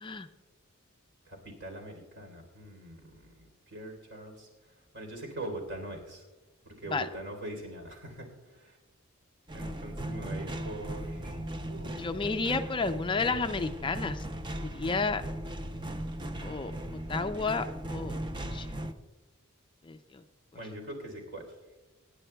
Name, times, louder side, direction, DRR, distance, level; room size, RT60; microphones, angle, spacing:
voice 1, 1.3-4.5 4.9-6.2 6.7-8.3 8.5-8.8 9.5-11.4 11.7-12.1 20.5-21.5, right 1 dB, 60° right, 2 dB, 3.6 m, -42 dB
sound 1, 9.5-18.9, right 1 dB, 20° right, 0.6 m, -38 dB
voice 2, 12.0-14.2 14.6-15.2 16.4-16.7 17.1-18.2 18.5-18.9 19.9-20.0, left 4 dB, 25° left, 9 dB, 0.4 m, -31 dB
27.5 x 10.0 x 2.3 m, 1.2 s
head